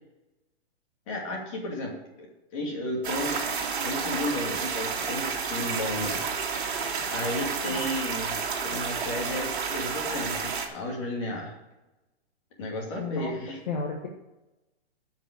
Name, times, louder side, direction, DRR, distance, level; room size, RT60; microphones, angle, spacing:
voice 1, 1.1-2.3 2.5-3.4 3.8-6.2 7.1-8.4 8.6-11.5 12.6-13.6, left 1 dB, 30° left, -1 dB, 2.7 m, -33 dB
sound 1, 3.0-10.7, right 5 dB, 55° right, 2.3 m, -30 dB
voice 2, 13.0-13.3 13.7-14.1, left 4 dB, 45° left, 0 dB, 1.6 m, -32 dB
9.2 x 5.8 x 8.1 m, 1.0 s
hypercardioid pair, 175°, 32 cm